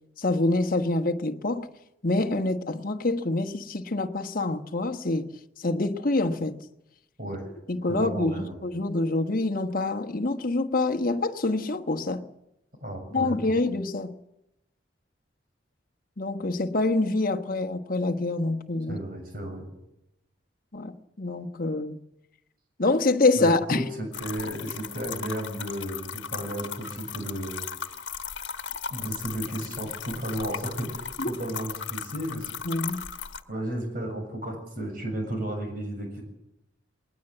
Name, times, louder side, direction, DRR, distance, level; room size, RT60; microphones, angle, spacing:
voice 1, 0.2-1.7 2.0-5.3 5.6-6.6 7.7-12.3 13.1-14.1 16.2-19.0 20.7-22.0 22.8-23.9 31.2-31.3 32.6-33.1, left 2 dB, 45° left, 1.2 m, -26 dB
voice 2, 7.9-8.5 12.8-13.4 18.9-19.6 23.4-27.6 28.9-32.5 33.5-36.2, right 1 dB, 50° right, 7.1 m, -33 dB
sound 1, 24.1-33.4, left 7 dB, 70° left, 1.4 m, -37 dB
20.5 x 19.5 x 7.9 m
head